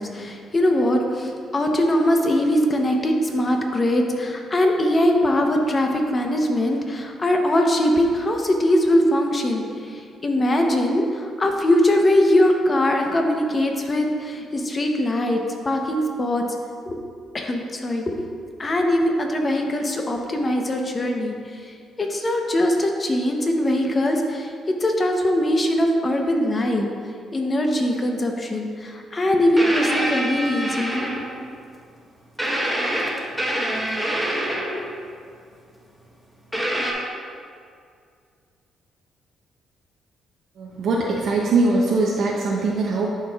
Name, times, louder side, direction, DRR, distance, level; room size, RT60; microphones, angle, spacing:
voice 1, 0.0-15.4 15.6-16.4 16.9-17.0 17.3-18.2 18.6-24.5 24.8-26.9 27.3-31.1, left 1 dB, 30° left, 2 dB, 0.9 m, -21 dB
sound 1, 29.6-31.5 32.4-35.0 36.5-36.9, right 1 dB, ahead, 1.1 m, -25 dB
voice 2, 40.6-43.1, right 3 dB, 70° right, -3 dB, 0.7 m, -21 dB
11.0 x 4.4 x 2.4 m, 2.3 s
cardioid pair, 90°, 0 cm